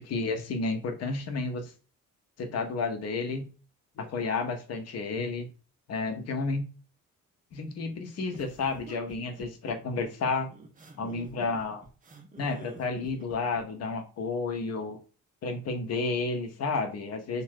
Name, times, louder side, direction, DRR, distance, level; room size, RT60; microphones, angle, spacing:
voice 1, 0.0-1.7 2.4-3.5 4.0-5.5 5.9-6.7 7.5-10.5 11.0-11.8 12.4-15.0 15.4-17.4, left 3 dB, 35° left, 0.7 m, -31 dB
sound 1, 8.3-13.6, right 3 dB, 20° right, 0.6 m, -48 dB
2.5 x 2.1 x 3.6 m
figure-of-eight pair, 45°, 42 cm